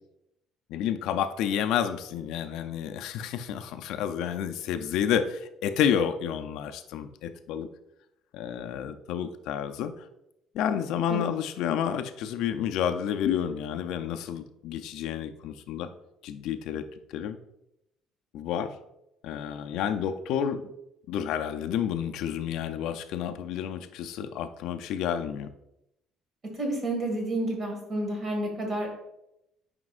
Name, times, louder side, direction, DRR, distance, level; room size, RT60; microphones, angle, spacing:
voice 1, 0.7-7.7 8.3-10.1 10.5-15.9 16.2-17.4 18.3-18.7 19.2-20.6 21.1-25.5, left 9 dB, 70° left, 8 dB, 0.4 m, -30 dB
voice 2, 26.5-28.9, right 1 dB, 30° right, 1 dB, 1.9 m, -30 dB
9.5 x 5.1 x 2.5 m, 0.85 s
cardioid pair, 165°, 0 cm